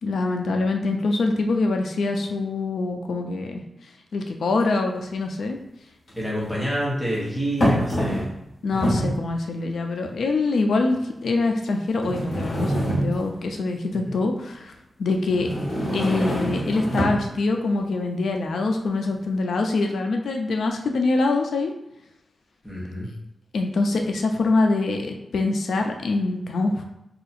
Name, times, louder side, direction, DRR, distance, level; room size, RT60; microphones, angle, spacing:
voice 1, 0.0-3.6 4.1-5.6 8.6-14.7 15.0-15.5 15.9-21.7 23.5-26.8, left 3 dB, 85° left, 3 dB, 0.4 m, -24 dB
sound 1, 4.6-4.7 6.1-6.7 7.6-8.4 8.7-9.2 10.0-10.1 10.9-11.0 12.0-13.4 15.3-17.3, equal, 55° left, 1.4 m, -25 dB
voice 2, 6.1-8.3 8.7-9.0 13.9-14.2 22.6-23.1, equal, ahead, -7 dB, 1.0 m, -28 dB
2.7 x 2.4 x 4.1 m, 0.87 s
wide cardioid pair, 175°, 0 cm